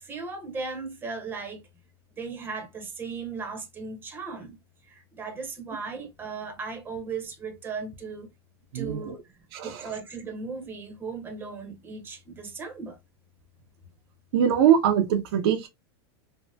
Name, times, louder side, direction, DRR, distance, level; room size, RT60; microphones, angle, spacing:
voice 1, 0.0-1.6 2.1-4.6 4.9-8.3 8.7-9.2 9.6-13.0, right 4 dB, 15° right, 0.7 m, -37 dB
voice 2, 8.7-9.2 9.5-10.0 14.3-15.7, right 9 dB, 65° right, 0.5 m, -23 dB
3.3 x 2.0 x 2.6 m
supercardioid pair, 140°, 14 cm